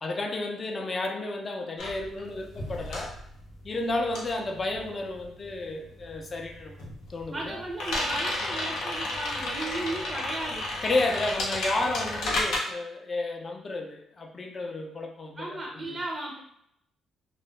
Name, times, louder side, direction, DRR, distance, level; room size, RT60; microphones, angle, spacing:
voice 1, 0.0-3.2 3.6-7.6 10.8-15.5 15.7-16.0, left 2 dB, 35° left, 3 dB, 0.5 m, -32 dB
sound 1, 1.8-5.6 5.8-12.6, left 2 dB, 85° left, 0.7 m, -32 dB
voice 2, 7.3-10.7 15.4-16.4, right 2 dB, 25° right, -1 dB, 0.5 m, -35 dB
2.3 x 2.0 x 3.1 m, 0.75 s
cardioid pair, 90°, 0 cm